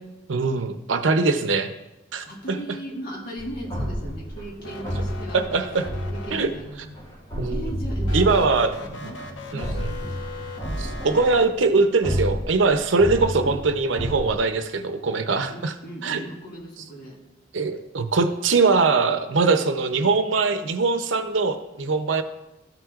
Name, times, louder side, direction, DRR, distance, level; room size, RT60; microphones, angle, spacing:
voice 1, 0.3-1.7 2.1-2.6 5.3-5.9 6.3-6.5 7.4-7.7 8.1-8.7 9.0-9.1 9.5-9.9 10.8-15.7 16.0-16.2 17.5-22.2, right 4 dB, 85° right, 8 dB, 0.7 m, -22 dB
voice 2, 2.3-5.4 5.8-6.9 7.5-10.4 15.5-17.2, right 1 dB, 50° left, -3 dB, 1.7 m, -38 dB
sound 1, 3.4-11.6 12.0-14.4, equal, 20° left, 2.1 m, -30 dB
sound 2, 4.6-6.8 8.0-11.5, left 2 dB, 80° left, 0.8 m, -39 dB
13.5 x 6.0 x 2.5 m, 0.96 s
head